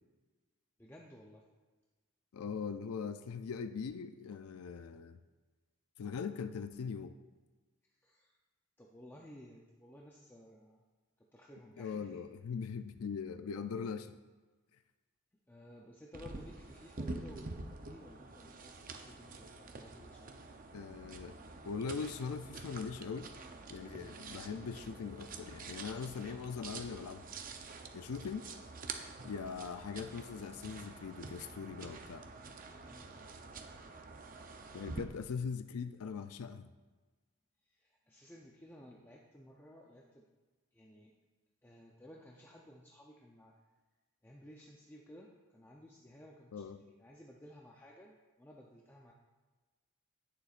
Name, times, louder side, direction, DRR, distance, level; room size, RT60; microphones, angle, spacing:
voice 1, 0.8-1.4 8.0-8.4 8.8-10.8 11.3-12.2 15.5-20.3 24.0-24.3 29.3-29.5 32.8-33.4 37.7-40.3 40.7-41.1 41.6-43.5 44.2-49.1, equal, 10° left, -1 dB, 0.5 m, -56 dB
voice 2, 2.3-5.2 6.0-7.1 11.8-14.1 20.7-21.4 21.6-23.3 23.7-27.3 27.9-28.5 29.2-32.2 34.7-36.7 46.5-46.8, left 5 dB, 80° left, 10 dB, 0.4 m, -41 dB
sound 1, 16.1-35.0, right 3 dB, 40° right, 0.6 m, -47 dB
17.5 x 6.9 x 2.5 m, 1.3 s
head